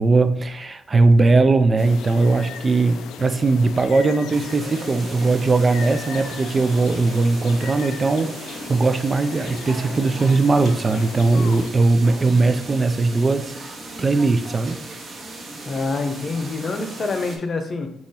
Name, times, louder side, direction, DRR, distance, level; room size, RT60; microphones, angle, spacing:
voice 1, 0.0-13.7 14.0-14.8, right 3 dB, 30° right, 10 dB, 0.4 m, -19 dB
sound 1, 1.8-11.7, left 7 dB, 85° left, 0.3 m, -37 dB
sound 2, 4.3-17.4, right 2 dB, 50° right, 1.0 m, -37 dB
voice 2, 15.7-17.9, left 3 dB, 45° left, 6 dB, 0.7 m, -26 dB
3.8 x 2.9 x 4.2 m, 0.79 s
cardioid pair, 90°, 0 cm